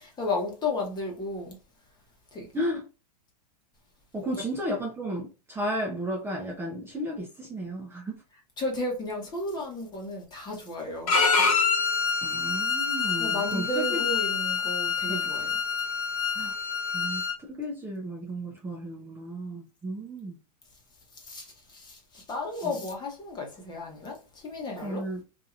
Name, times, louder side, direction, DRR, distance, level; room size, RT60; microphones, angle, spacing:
voice 1, 0.2-1.6 2.3-2.5 4.3-4.4 8.6-11.5 13.2-15.6 21.2-25.0, left 2 dB, 20° left, 1.1 m, -33 dB
voice 2, 4.1-8.2 12.2-14.0 15.1-15.3 16.4-16.5 16.9-20.4 22.6-22.8 24.8-25.2, equal, 10° right, 0.7 m, -33 dB
Bowed string instrument, 11.1-17.3, left 5 dB, 60° left, 1.2 m, -26 dB
2.8 x 2.6 x 2.4 m
hypercardioid pair, 120°, 21 cm